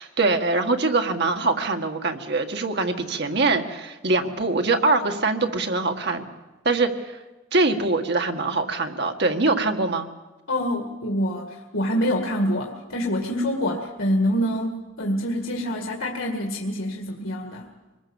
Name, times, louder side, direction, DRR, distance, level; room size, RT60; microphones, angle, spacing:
voice 1, 0.0-6.2 6.7-7.2 7.5-10.1, right 3 dB, 55° right, 5 dB, 1.9 m, -23 dB
voice 2, 10.5-17.7, equal, 80° left, 1 dB, 2.1 m, -26 dB
25.0 x 21.0 x 7.2 m, 1.1 s
head